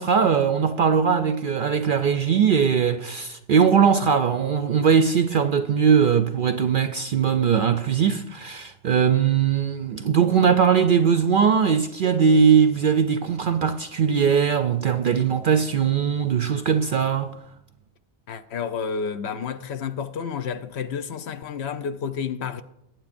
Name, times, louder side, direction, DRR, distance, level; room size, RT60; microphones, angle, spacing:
voice 1, 0.0-17.3, right 7 dB, 60° right, 0.5 m, -20 dB
voice 2, 18.3-22.6, left 6 dB, 65° left, 0.8 m, -30 dB
19.0 x 9.0 x 2.5 m
omnidirectional pair, 1.3 m